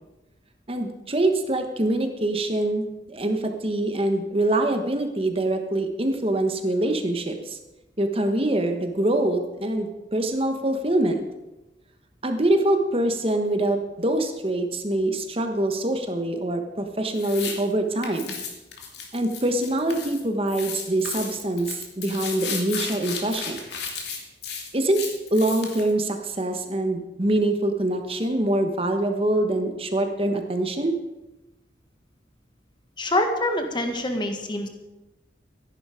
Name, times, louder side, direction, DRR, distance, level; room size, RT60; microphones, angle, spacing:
voice 1, 0.7-7.6 8.0-11.2 12.2-18.4 19.1-23.6 24.7-25.0 25.3-30.9, right 1 dB, 30° right, 5 dB, 1.2 m, -24 dB
sound 1, 17.2-17.6 18.0-20.2 20.5-25.9, left 6 dB, 70° left, 2.7 m, -34 dB
voice 2, 33.0-34.7, left 1 dB, 25° left, 5 dB, 1.5 m, -25 dB
14.0 x 11.0 x 5.0 m, 1.0 s
head